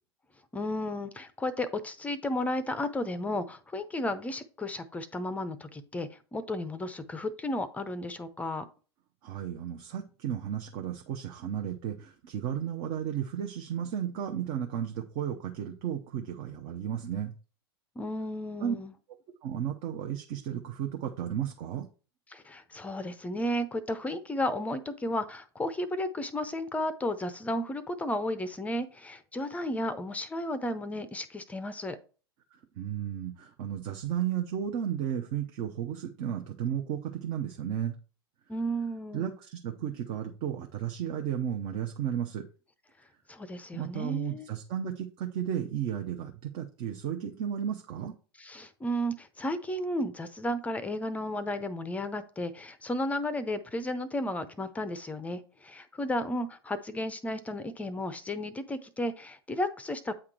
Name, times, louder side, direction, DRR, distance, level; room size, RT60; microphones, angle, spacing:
voice 1, 0.5-8.7 18.0-18.9 22.3-32.0 38.5-39.3 43.3-44.5 48.4-60.1, left 1 dB, 10° left, 13 dB, 0.6 m, -33 dB
voice 2, 9.2-17.3 18.6-18.8 19.4-21.9 32.5-37.9 39.1-42.5 43.7-48.1, right 9 dB, 45° right, 3 dB, 0.8 m, -34 dB
8.9 x 3.7 x 4.5 m, 0.37 s
figure-of-eight pair, 90°, 13 cm